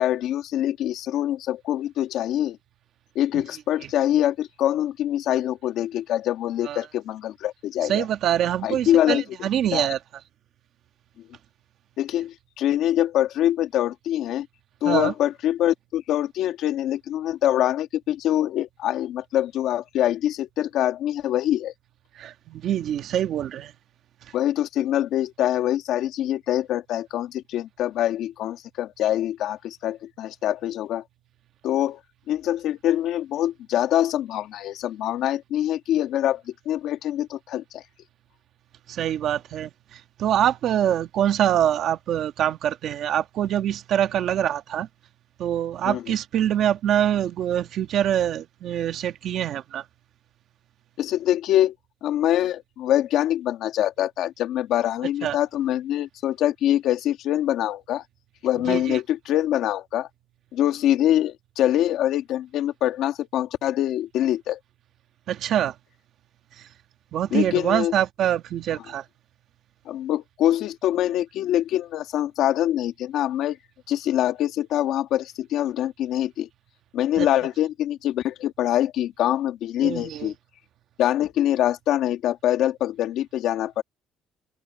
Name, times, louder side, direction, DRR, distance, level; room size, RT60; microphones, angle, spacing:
voice 1, 0.0-2.6 3.2-8.0 8.6-9.9 12.0-14.5 14.8-21.7 24.3-31.0 31.6-32.0 32.3-37.8 45.9-46.0 51.0-51.7 52.0-58.0 58.4-60.1 60.5-64.6 67.3-67.9 69.9-73.6 73.9-76.5 76.9-80.3 81.0-83.8, left 12 dB, 65° left, 1.8 m, -24 dB
voice 2, 7.8-10.0 14.8-15.1 22.1-23.7 38.9-44.9 45.4-49.8 55.2-55.4 58.6-59.0 65.3-65.7 66.6-66.7 67.1-69.0 77.2-77.3 79.8-80.3, right 10 dB, 50° right, 1.6 m, -25 dB
cardioid pair, 170°, 0 cm